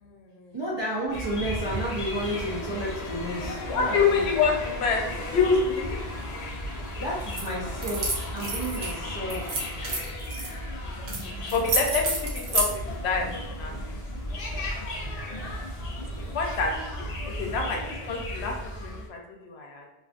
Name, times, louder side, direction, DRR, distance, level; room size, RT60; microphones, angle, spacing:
voice 1, 0.0-0.5 3.7-5.0 5.3-6.0 11.5-12.7 13.0-13.9 16.3-17.0 17.4-19.9, left 5 dB, 80° left, 1 dB, 0.8 m, -27 dB
voice 2, 0.5-4.2 7.0-9.7, right 1 dB, 40° right, -7 dB, 0.4 m, -32 dB
sound 1, 1.1-19.1, left 1 dB, 50° left, 0.5 m, -35 dB
sound 2, 7.3-7.5 7.8-8.9 9.3-10.5 11.1-11.2 11.5-12.7, right 2 dB, 85° right, 0.9 m, -29 dB
2.4 x 2.4 x 2.4 m, 0.98 s
omnidirectional pair, 1.1 m